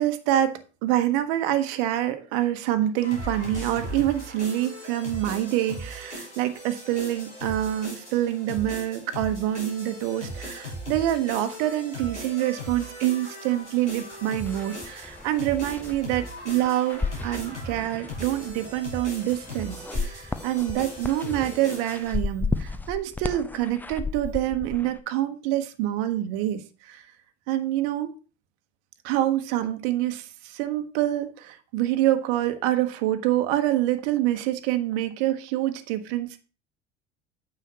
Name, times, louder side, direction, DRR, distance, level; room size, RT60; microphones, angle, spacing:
voice 1, 0.0-27.0 27.5-28.1 29.0-36.4, right 13 dB, 55° right, 1.1 m, -26 dB
sound 1, 3.0-22.2, equal, 85° left, 3.9 m, -38 dB
sound 2, 14.1-14.2 14.4-25.0, left 3 dB, 5° left, 0.4 m, -34 dB
9.1 x 6.8 x 2.9 m
figure-of-eight pair, 70°, 34 cm